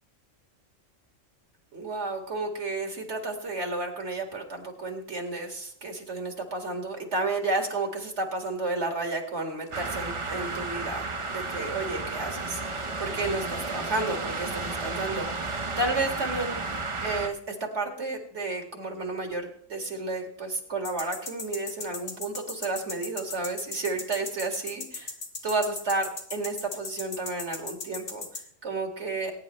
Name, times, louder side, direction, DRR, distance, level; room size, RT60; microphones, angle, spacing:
voice 1, 1.7-16.5 17.0-25.1 25.4-28.2 28.6-29.3, right 3 dB, 60° right, 3 dB, 2.3 m, -32 dB
sound 1, 9.7-17.3, right 3 dB, 30° right, 0.8 m, -33 dB
sound 2, 20.8-28.4, left 3 dB, 70° left, 2.1 m, -36 dB
21.0 x 9.7 x 3.1 m, 0.66 s
omnidirectional pair, 1.3 m